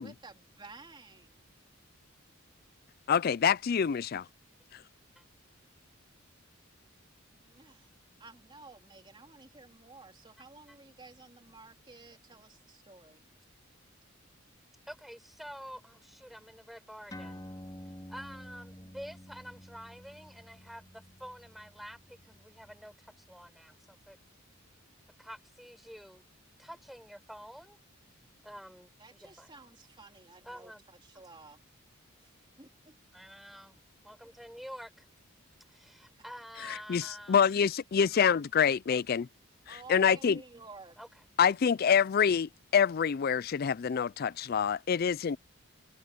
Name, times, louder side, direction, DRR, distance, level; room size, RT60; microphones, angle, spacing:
voice 1, 0.0-1.5 7.4-7.9 8.2-13.2 29.0-31.6 32.2-32.3 32.6-33.0 39.7-41.0, right 3 dB, 20° right, 3.3 m, -53 dB
voice 2, 3.1-4.3 36.6-39.3 39.7-40.4 41.4-45.4, left 7 dB, 45° left, 0.3 m, -26 dB
voice 3, 14.9-17.5 17.8-24.2 25.2-26.2 26.6-27.8 28.4-29.5 30.4-30.8 31.1-31.3 33.1-33.8 34.0-35.1 35.7-37.7 41.0-41.1, equal, ahead, 5.1 m, -48 dB
sound 1, 17.1-24.0, equal, 20° left, 4.2 m, -50 dB
head